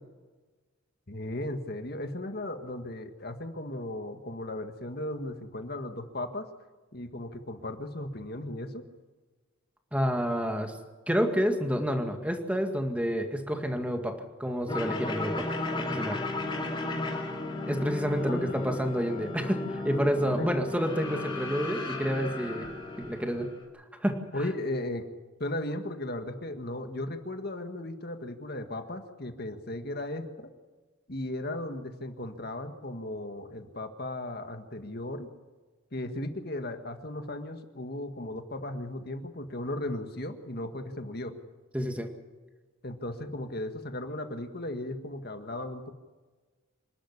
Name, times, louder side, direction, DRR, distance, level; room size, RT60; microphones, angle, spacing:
voice 1, 1.1-6.5 6.9-8.8 18.1-18.8 20.4-20.5 24.3-25.0 25.4-30.5 31.1-35.3 35.9-41.3 42.8-45.9, left 1 dB, 50° left, 7 dB, 1.8 m, -36 dB
voice 2, 9.9-10.8 11.1-15.5 15.9-16.2 17.7-22.7 23.0-23.5 23.7-24.3 41.7-42.1, equal, 5° right, 4 dB, 2.0 m, -29 dB
sound 1, 14.7-23.6, left 2 dB, 25° left, 4.2 m, -34 dB
26.5 x 12.0 x 9.9 m, 1.3 s
head